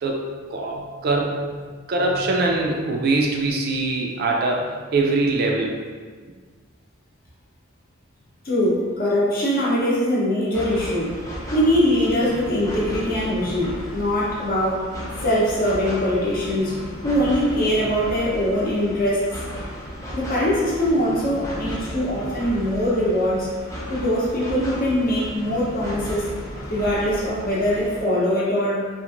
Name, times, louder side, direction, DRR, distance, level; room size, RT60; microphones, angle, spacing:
voice 1, 0.0-5.7, right 2 dB, 50° right, 0 dB, 0.3 m, -23 dB
voice 2, 8.4-11.2 11.5-14.9 15.2-16.8 17.0-19.3 20.1-23.5 23.9-26.2 26.7-28.9, equal, 45° left, -6 dB, 0.8 m, -22 dB
sound 1, 10.5-28.1, equal, 15° left, 0.4 m, -34 dB
2.8 x 2.5 x 2.5 m, 1.5 s
head